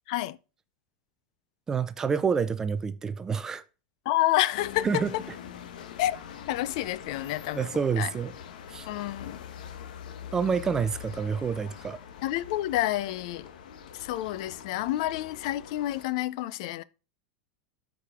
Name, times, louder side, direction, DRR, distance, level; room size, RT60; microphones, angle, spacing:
voice 1, 1.7-3.6 4.8-5.1 7.5-8.3 8.7-8.9 10.3-12.0, right 6 dB, 10° right, 0.4 m, -28 dB
voice 2, 4.1-5.2 6.0-6.2 6.5-7.7 8.0-8.1 8.9-9.4 12.2-13.5 13.9-16.8, left 14 dB, 50° left, 0.5 m, -29 dB
sound 1, 4.5-16.1, left 8 dB, 85° left, 1.1 m, -44 dB
13.0 x 4.9 x 3.6 m
supercardioid pair, 170°, 4 cm